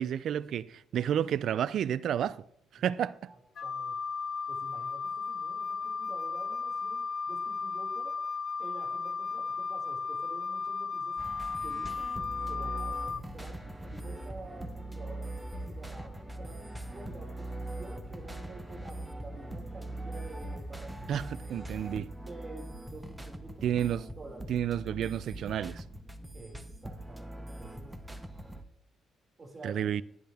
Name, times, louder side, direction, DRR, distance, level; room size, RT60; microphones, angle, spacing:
voice 1, 0.0-2.4 2.7-3.3 21.1-22.1 23.6-24.1 24.5-25.8 29.6-30.0, right 9 dB, 65° right, 0.4 m, -31 dB
voice 2, 3.3-4.0 4.5-8.2 8.6-11.2 11.6-12.1 12.5-15.3 15.7-21.3 22.2-23.7 24.2-24.5 26.3-28.6 29.4-29.8, right 2 dB, 30° right, 5.3 m, -49 dB
Wind instrument woodwind instrument, 3.6-13.2, left 5 dB, 50° left, 0.4 m, -35 dB
sound 1, 11.2-28.6, right 1 dB, 5° right, 1.0 m, -41 dB
11.5 x 10.5 x 3.5 m
cardioid pair, 110°, 0 cm